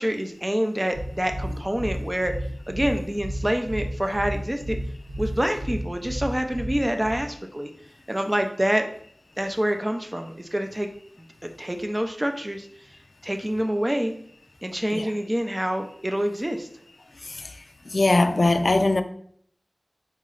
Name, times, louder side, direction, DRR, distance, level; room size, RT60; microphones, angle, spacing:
voice 1, 0.0-2.3 2.7-4.8 5.2-7.7 8.1-8.8 9.4-10.9 11.6-12.7 13.2-14.1 14.6-16.7, equal, 20° right, 0.5 m, -26 dB
sound 1, 0.9-7.3, right 1 dB, 65° right, 0.9 m, -32 dB
voice 2, 17.9-19.0, left 2 dB, 60° left, 0.3 m, -20 dB
4.1 x 3.1 x 3.8 m
wide cardioid pair, 55°, 0 cm